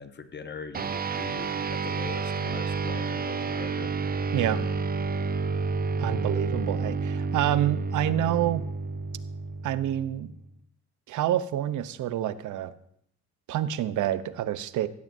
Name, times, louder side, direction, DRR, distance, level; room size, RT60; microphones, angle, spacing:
voice 1, 0.0-3.9, left 5 dB, 35° left, 9 dB, 1.0 m, -41 dB
sound 1, 0.7-10.5, right 4 dB, 30° right, 0.7 m, -30 dB
voice 2, 6.0-8.6 9.6-10.3 11.1-12.7 13.5-14.9, right 12 dB, 80° right, 14 dB, 0.8 m, -27 dB
16.5 x 13.5 x 2.7 m, 0.68 s
cardioid pair, 90°, 30 cm